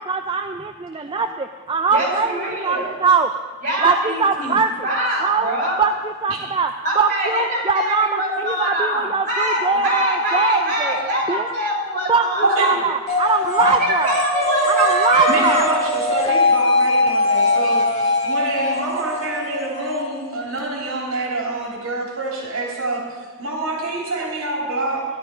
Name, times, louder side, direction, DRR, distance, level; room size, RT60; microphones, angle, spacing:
voice 1, 0.0-4.7 5.2-5.5 5.8-11.0 11.3-11.5 12.1-14.2 14.7-15.7 18.1-18.3 24.2-24.3, right 5 dB, 25° right, 6 dB, 0.4 m, -22 dB
voice 2, 1.9-2.9 3.6-4.6 4.8-5.8 6.8-12.8 13.6-13.7 14.0-15.7, equal, 40° right, -3 dB, 5.6 m, -23 dB
voice 3, 12.4-12.8 15.3-25.1, right 2 dB, 65° right, -2 dB, 3.2 m, -26 dB
sound 1, 13.1-20.6, left 2 dB, 30° left, 1.8 m, -21 dB
15.5 x 12.0 x 5.1 m, 1.5 s
head